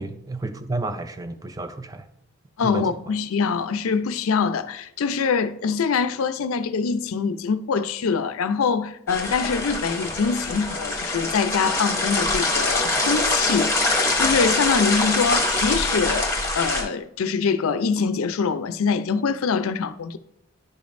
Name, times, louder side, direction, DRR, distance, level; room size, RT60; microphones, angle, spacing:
voice 1, 0.0-2.1 2.6-2.9, right 2 dB, 15° right, 0.4 m, -31 dB
voice 2, 2.6-20.2, left 5 dB, 75° left, 0.4 m, -24 dB
sound 1, 9.1-16.8, left 2 dB, 15° left, 0.9 m, -24 dB
10.5 x 5.1 x 2.6 m
head